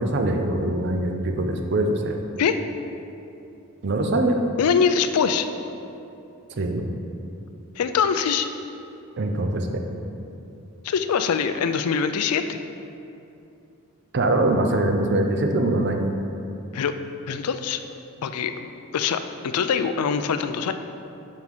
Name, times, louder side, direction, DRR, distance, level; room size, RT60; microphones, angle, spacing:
voice 1, 0.0-2.2 3.8-4.4 6.6-6.9 9.2-9.7 14.1-16.0, right 1 dB, 50° right, 4 dB, 0.5 m, -23 dB
voice 2, 4.6-5.5 7.8-8.5 10.8-12.6 16.7-16.9 17.3-17.8 18.2-18.7 18.9-20.7, left 6 dB, 90° left, 9 dB, 0.4 m, -23 dB
5.4 x 5.2 x 4.7 m, 2.7 s
head